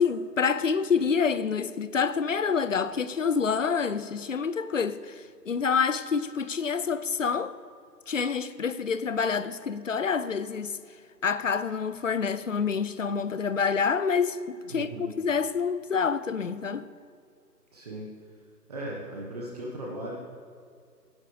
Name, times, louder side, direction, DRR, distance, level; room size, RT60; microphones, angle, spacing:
voice 1, 0.0-7.6 8.1-10.8 11.2-16.9, left 6 dB, 50° left, 0.7 m, -27 dB
voice 2, 14.6-15.2 17.7-18.1 18.7-20.2, right 1 dB, 25° right, 1.4 m, -37 dB
24.5 x 10.0 x 3.3 m
figure-of-eight pair, 160°, 50 cm